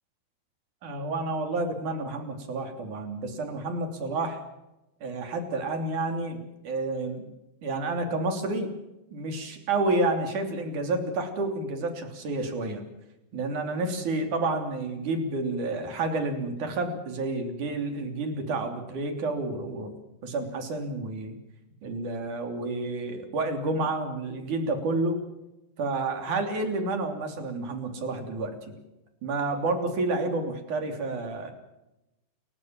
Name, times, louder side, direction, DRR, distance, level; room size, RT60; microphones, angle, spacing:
voice 1, 0.8-4.4 5.0-7.2 7.6-8.7 9.1-12.8 13.3-19.9 20.2-21.4 21.8-25.2 25.8-28.8 29.2-31.5, right 2 dB, 50° right, 6 dB, 4.3 m, -30 dB
29.5 x 15.0 x 7.5 m, 0.93 s
omnidirectional pair, 4.7 m